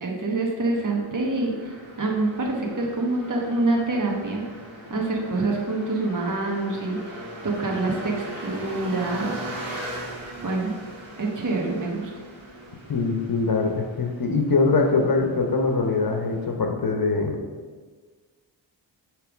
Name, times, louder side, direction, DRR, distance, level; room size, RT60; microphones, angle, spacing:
voice 1, 0.0-4.4 4.9-9.4 10.4-10.7 11.2-12.1, right 2 dB, 40° right, -1 dB, 1.2 m, -26 dB
sound 1, 0.7-16.5, right 1 dB, 80° right, 1.9 m, -40 dB
voice 2, 12.9-17.4, left 4 dB, 45° left, 3 dB, 1.0 m, -23 dB
6.6 x 3.3 x 5.1 m, 1.5 s
cardioid pair, 50°, 47 cm